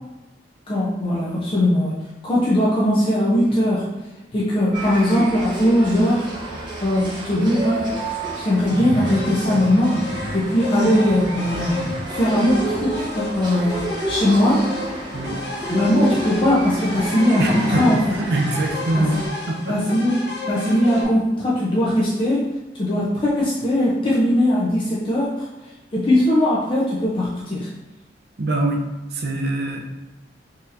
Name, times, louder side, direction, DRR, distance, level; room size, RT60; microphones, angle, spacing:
voice 1, 0.7-1.9 2.2-3.9 4.3-6.3 6.8-10.1 10.3-11.8 12.1-14.6 15.7-18.0 18.9-19.1 19.7-22.5 22.8-25.5 25.9-27.7, left 1 dB, 30° left, -6 dB, 0.5 m, -20 dB
sound 1, 4.7-19.3, right 1 dB, 25° right, 0.8 m, -30 dB
sound 2, 9.0-21.0, left 2 dB, 65° left, 0.7 m, -33 dB
voice 2, 17.4-19.2 19.5-20.0 28.4-28.8 29.1-29.8, right 1 dB, 60° right, 2 dB, 0.5 m, -23 dB
3.9 x 2.8 x 2.5 m, 1.1 s
head